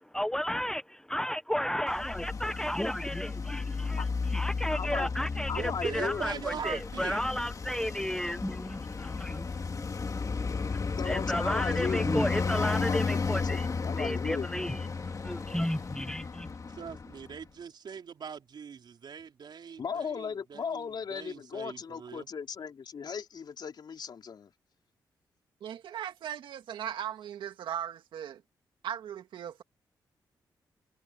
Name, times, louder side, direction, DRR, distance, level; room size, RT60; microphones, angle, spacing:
voice 1, 0.1-0.8 1.1-16.5, equal, 5° left, 0.9 m, -33 dB
Traffic noise roadway noise, 1.9-17.3, left 4 dB, 45° left, 2.6 m, -33 dB
voice 2, 4.7-5.1 5.5-6.2 6.7-6.8 10.9-14.5 19.8-24.5, left 6 dB, 65° left, 3.7 m, -37 dB
voice 3, 5.5-7.2 16.7-22.3, right 7 dB, 65° right, 4.5 m, -41 dB
voice 4, 25.6-28.4 28.8-29.6, right 10 dB, 90° right, 2.1 m, -38 dB
cardioid pair, 70°, 8 cm